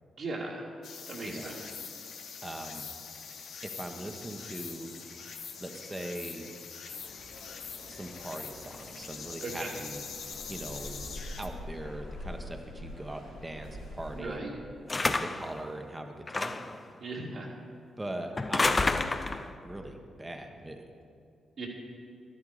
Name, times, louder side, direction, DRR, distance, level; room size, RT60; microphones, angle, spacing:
voice 1, 0.2-0.6 1.1-1.6 9.4-9.7 14.1-14.5 17.0-17.5 21.6-21.7, right 3 dB, 65° right, -7 dB, 2.2 m, -37 dB
sound 1, 0.8-11.5, left 6 dB, 70° left, 1.0 m, -44 dB
voice 2, 1.2-1.6 2.4-2.9 3.6-4.9 5.6-6.6 7.9-14.5 15.0-16.8 18.0-19.1 19.6-21.0, right 1 dB, 20° right, 4 dB, 1.3 m, -41 dB
sound 2, 6.9-14.2, left 1 dB, 90° left, 2.2 m, -45 dB
sound 3, 14.9-15.5 16.3-16.8 18.4-19.5, left 3 dB, 35° left, 0.7 m, -28 dB
12.5 x 11.0 x 5.0 m, 2.4 s
supercardioid pair, 45°, 0 cm